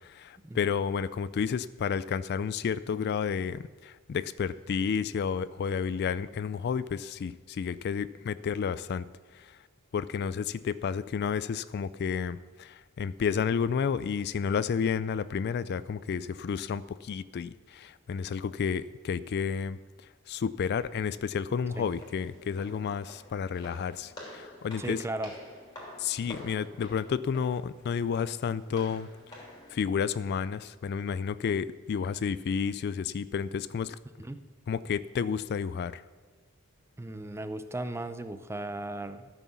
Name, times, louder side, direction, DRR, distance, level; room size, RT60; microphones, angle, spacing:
voice 1, 0.1-9.1 9.9-19.8 20.3-25.0 26.0-29.1 29.7-34.0 34.7-36.0, left 6 dB, 50° left, 17 dB, 0.3 m, -31 dB
Walk footsteps, 21.7-29.7, left 1 dB, 20° left, 3.0 m, -49 dB
voice 2, 24.8-25.3 34.2-34.4 37.0-39.3, right 2 dB, 10° right, 11 dB, 0.5 m, -36 dB
13.0 x 6.2 x 7.1 m, 1.4 s
head